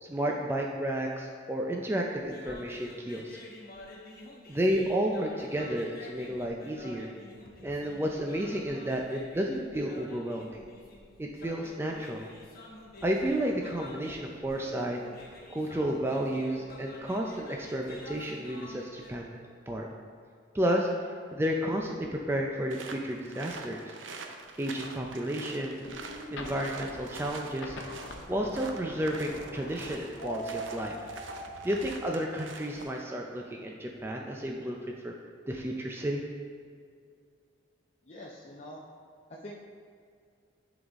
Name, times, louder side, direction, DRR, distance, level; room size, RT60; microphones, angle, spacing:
voice 1, 0.0-3.4 4.5-7.1 7.6-10.6 11.2-12.3 13.0-15.0 15.5-19.3 19.7-19.9 20.5-20.9 21.3-23.9 24.6-25.8 26.3-27.8 28.3-31.0 31.6-35.1 35.5-36.2, equal, 15° right, 0 dB, 0.4 m, -32 dB
sound 1, 2.2-19.1, left 2 dB, 55° left, 0.9 m, -49 dB
sound 2, 22.7-33.0, right 4 dB, 85° right, 0.6 m, -45 dB
sound 3, 25.8-32.0, equal, 80° left, 0.8 m, -42 dB
voice 2, 38.0-38.8 39.3-39.5, left 1 dB, 35° left, -4 dB, 0.6 m, -45 dB
11.0 x 4.0 x 3.5 m, 2.2 s
head